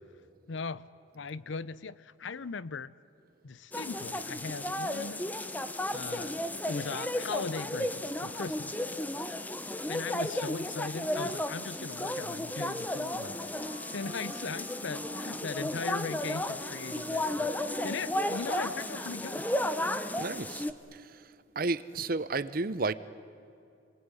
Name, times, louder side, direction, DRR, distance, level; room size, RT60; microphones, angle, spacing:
voice 1, 0.5-0.9 1.1-2.9 3.4-5.3 5.9-8.8 9.9-13.5 13.9-19.5 21.9-22.0, left 4 dB, 70° left, 18 dB, 0.6 m, -39 dB
sound 1, 3.7-20.7, left 1 dB, 10° left, 0.7 m, -34 dB
Wind instrument woodwind instrument, 13.1-20.2, equal, 35° left, 4.4 m, -47 dB
voice 2, 20.2-20.7 20.9-21.3 21.6-22.9, right 3 dB, 45° right, 16 dB, 0.7 m, -32 dB
27.5 x 21.0 x 9.7 m, 2.5 s
head